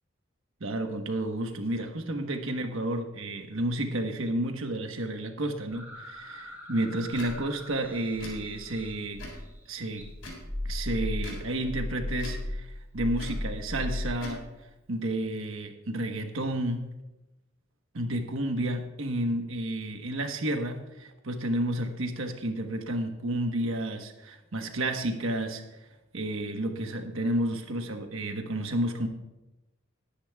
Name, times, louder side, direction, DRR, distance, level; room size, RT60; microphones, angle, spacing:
voice 1, 0.6-9.2 9.7-10.1 10.6-12.7 12.9-14.4 14.9-16.9 17.9-25.6 26.1-29.1, right 1 dB, 85° right, 5 dB, 1.2 m, -31 dB
sound 1, 5.7-9.6 10.0-14.1, left 1 dB, 10° right, 1.6 m, -37 dB
Tick / Tick-tock, 7.1-7.3 8.1-8.4 9.1-9.4 10.2-10.5 11.2-11.4 12.1-12.4 13.1-13.4 14.1-14.4, left 1 dB, 85° left, 3.7 m, -42 dB
20.0 x 10.0 x 2.3 m, 1.0 s
head